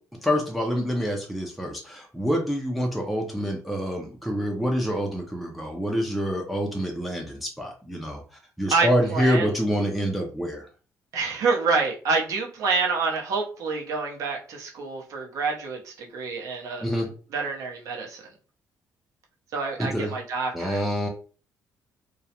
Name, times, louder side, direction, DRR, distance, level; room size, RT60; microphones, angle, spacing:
voice 1, 0.2-8.2 8.6-10.6 16.8-17.1 19.8-20.1 20.5-21.1, equal, ahead, 0 dB, 0.4 m, -26 dB
voice 2, 8.7-9.5 11.1-16.9 17.3-18.2 19.5-20.8, right 4 dB, 65° right, 0 dB, 0.7 m, -27 dB
2.3 x 2.0 x 2.8 m, 0.37 s
cardioid pair, 170°, 6 cm